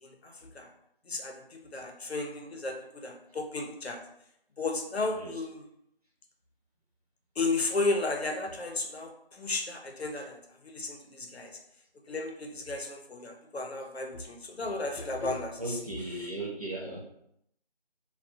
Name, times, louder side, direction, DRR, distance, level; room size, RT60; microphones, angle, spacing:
voice 1, 0.0-0.7 1.0-4.0 4.6-5.6 7.4-11.6 12.1-15.8, left 3 dB, 90° left, 2 dB, 0.7 m, -34 dB
voice 2, 5.1-5.5 15.6-17.0, right 2 dB, 40° right, -4 dB, 0.6 m, -37 dB
2.3 x 2.3 x 2.6 m, 0.75 s
figure-of-eight pair, 170°, 31 cm